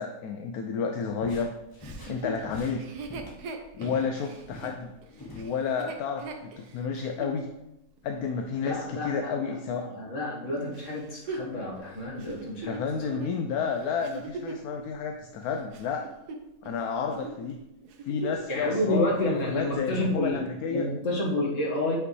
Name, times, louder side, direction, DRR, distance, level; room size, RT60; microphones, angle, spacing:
voice 1, 0.0-1.5 2.1-2.9 3.7-4.9 5.3-7.5 8.0-9.8 12.7-16.1 16.6-17.6 18.1-19.1 19.5-20.8, left 6 dB, 75° left, 4 dB, 1.0 m, -31 dB
sound 1, 1.2-4.1 4.4-5.5, left 1 dB, 15° left, 1.0 m, -43 dB
Chuckle chortle, 1.8-7.4 8.0-8.1 10.7-14.7 15.3-16.8 17.1-17.4 17.8-18.5 18.8-18.9 19.3-19.8 20.5-20.6, right 3 dB, 75° right, 1.3 m, -40 dB
voice 2, 8.6-13.2 18.5-20.4 20.7-21.9, left 1 dB, 50° left, -3 dB, 1.8 m, -30 dB
8.2 x 5.3 x 3.2 m, 0.92 s
omnidirectional pair, 1.7 m